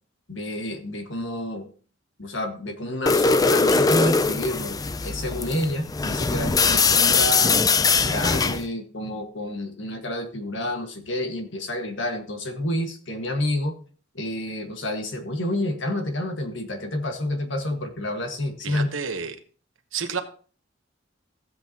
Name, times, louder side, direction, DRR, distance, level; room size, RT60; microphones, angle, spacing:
voice 1, 0.3-1.7 2.2-7.6 8.0-13.7 14.1-18.9, left 1 dB, 65° left, 5 dB, 1.6 m, -29 dB
sound 1, 3.1-8.6, left 4 dB, 20° left, 0.4 m, -21 dB
voice 2, 18.6-19.4 19.9-20.2, right 6 dB, 90° right, 7 dB, 1.1 m, -30 dB
15.5 x 7.9 x 2.9 m, 0.41 s
head